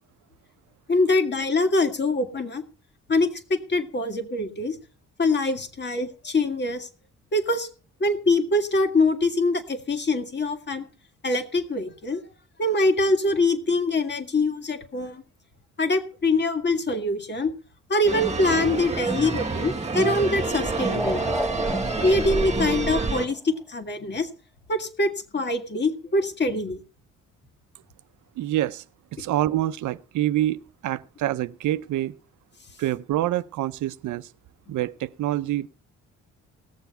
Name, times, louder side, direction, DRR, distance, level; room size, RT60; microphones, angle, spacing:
voice 1, 0.9-2.6 3.1-4.8 5.2-6.9 7.3-7.7 8.0-10.8 11.2-12.2 12.6-15.2 15.8-17.5 17.9-21.2 22.0-24.3 24.7-26.8, left 2 dB, 35° left, 2.1 m, -24 dB
sound 1, 18.1-23.3, right 3 dB, 20° right, 1.7 m, -28 dB
sound 2, 19.5-23.6, right 1 dB, ahead, 1.1 m, -34 dB
voice 2, 28.4-28.8 29.2-32.1 32.8-34.3 34.7-35.7, right 14 dB, 75° right, 0.7 m, -26 dB
18.0 x 7.0 x 5.6 m
cardioid pair, 90°, 30 cm